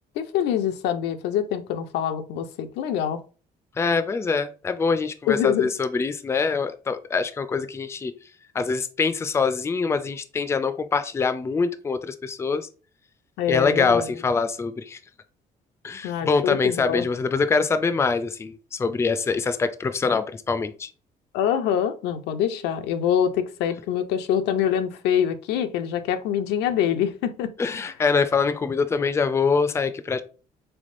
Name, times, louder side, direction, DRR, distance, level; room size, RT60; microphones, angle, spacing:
voice 1, 0.2-3.2 5.3-5.7 13.4-14.2 16.0-17.1 21.3-27.5, left 9 dB, 85° left, 8 dB, 0.5 m, -25 dB
voice 2, 3.8-8.1 8.5-12.7 13.5-15.0 15.8-20.9 27.6-30.2, left 4 dB, 15° left, 11 dB, 0.3 m, -24 dB
3.5 x 3.4 x 2.5 m, 0.36 s
cardioid pair, 110°, 17 cm